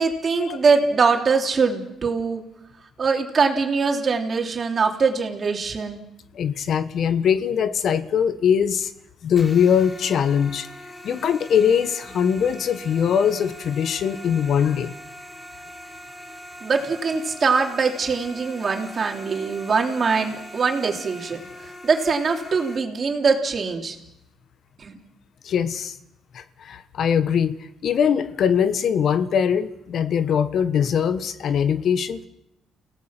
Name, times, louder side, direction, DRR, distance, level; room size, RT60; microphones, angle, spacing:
voice 1, 0.0-2.4 3.0-6.0 16.6-24.0 24.8-25.0, right 5 dB, 45° right, 3 dB, 3.4 m, -22 dB
voice 2, 6.3-8.9 9.2-10.7 11.0-15.0 25.4-26.0 26.3-27.6 27.8-32.3, left 8 dB, 65° left, 11 dB, 1.3 m, -21 dB
sound 1, 9.4-22.8, equal, 25° left, 4.8 m, -41 dB
30.0 x 17.5 x 6.0 m, 0.80 s
cardioid pair, 90°, 0 cm